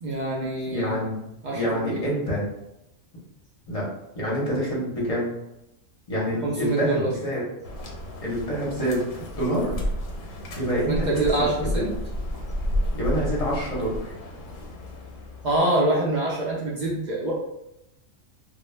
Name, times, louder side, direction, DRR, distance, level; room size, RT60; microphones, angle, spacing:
voice 1, 0.0-0.9 1.4-2.1 6.4-7.1 10.9-11.9 15.4-17.3, right 2 dB, 70° right, -4 dB, 0.4 m, -25 dB
voice 2, 0.7-1.3 1.5-2.5 3.7-3.9 4.1-5.3 6.1-7.4 8.2-9.8 10.6-11.1 11.4-11.5 11.7-11.8 12.9-14.1, equal, 35° left, -5 dB, 0.7 m, -27 dB
sound 1, 7.6-15.6, left 1 dB, 85° left, 1.0 m, -32 dB
2.2 x 2.0 x 3.1 m, 0.87 s
omnidirectional pair, 1.3 m